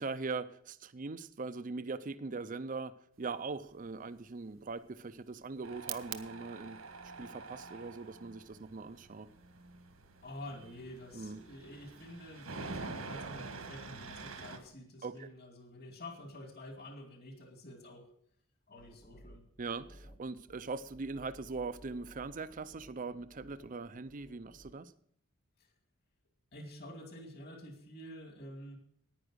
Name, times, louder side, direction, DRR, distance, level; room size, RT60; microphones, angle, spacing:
voice 1, 0.0-6.8 7.2-9.3 11.1-11.4 15.0-15.3 19.6-24.9, right 4 dB, 40° right, 13 dB, 0.5 m, -41 dB
sound 1, 3.1-14.8, right 13 dB, 65° right, 0.9 m, -54 dB
Tools, 5.6-14.6, right 3 dB, 80° right, 1.6 m, -47 dB
voice 2, 10.2-18.1 18.7-19.4 25.6-25.7 26.5-28.8, left 1 dB, 45° left, 4 dB, 2.4 m, -48 dB
sound 2, 18.8-24.7, equal, 25° left, 1.1 m, -58 dB
10.0 x 9.9 x 6.3 m, 0.65 s
head